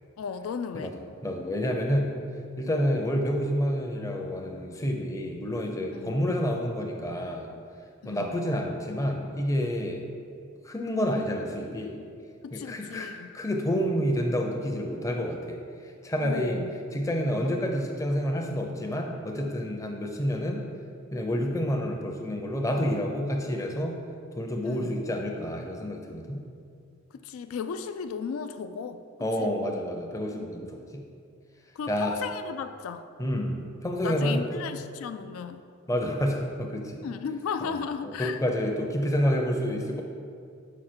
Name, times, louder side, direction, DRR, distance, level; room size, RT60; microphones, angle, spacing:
voice 1, 0.2-0.9 5.9-6.1 8.0-8.4 12.4-13.3 16.2-16.7 17.4-17.5 24.6-24.9 27.1-29.0 29.4-29.5 30.3-30.7 31.8-33.0 34.0-35.6 37.0-38.4, left 6 dB, 85° left, 9 dB, 0.3 m, -35 dB
voice 2, 0.7-2.1 2.6-7.5 8.0-10.0 10.6-12.0 12.5-15.6 16.0-16.6 16.9-20.7 21.1-24.0 24.4-26.4 29.2-31.0 31.9-32.2 33.2-34.5 35.9-37.0 37.6-37.8 38.0-40.0, equal, 15° left, 2 dB, 0.5 m, -29 dB
6.2 x 4.8 x 4.4 m, 2.3 s
head